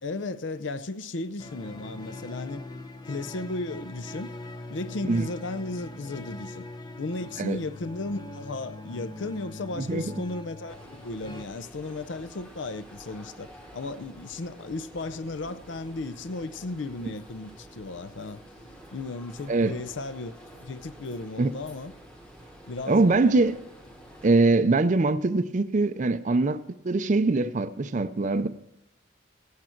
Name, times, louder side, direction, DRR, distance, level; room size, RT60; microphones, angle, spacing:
voice 1, 0.0-2.6 3.1-4.3 4.7-6.7 7.0-18.4 18.9-21.9 22.7-23.1, left 2 dB, 60° left, 0.6 m, -35 dB
sound 1, 1.4-11.4, left 2 dB, 20° left, 0.6 m, -42 dB
voice 2, 9.8-10.1 19.5-19.8 21.4-21.5 22.9-23.6 24.2-26.6 26.8-28.5, right 3 dB, 40° right, 0.5 m, -23 dB
sound 2, 10.7-24.3, equal, 5° left, 1.2 m, -49 dB
17.5 x 8.5 x 4.5 m
head